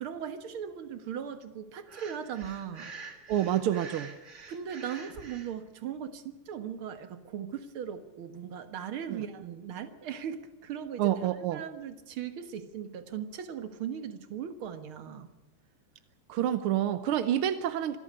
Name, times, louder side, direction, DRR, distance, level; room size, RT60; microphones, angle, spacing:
voice 1, 0.0-2.9 4.5-11.1 11.5-15.3, right 8 dB, 55° right, 9 dB, 1.9 m, -38 dB
Breathing, 1.9-5.5, right 4 dB, 30° right, 1.7 m, -47 dB
voice 2, 3.3-4.1 9.1-9.2 11.0-11.6 16.3-18.0, right 11 dB, 70° right, 11 dB, 1.3 m, -28 dB
25.5 x 12.5 x 10.0 m, 1.1 s
omnidirectional pair, 3.3 m